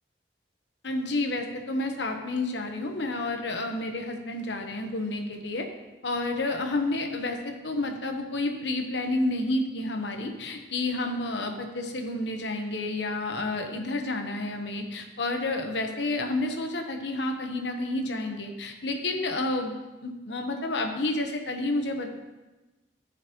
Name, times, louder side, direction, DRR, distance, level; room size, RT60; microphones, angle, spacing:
voice 1, 0.8-5.7 6.0-19.8 20.0-22.1, left 2 dB, 75° left, 4 dB, 1.0 m, -30 dB
14.0 x 5.7 x 3.0 m, 1.1 s
head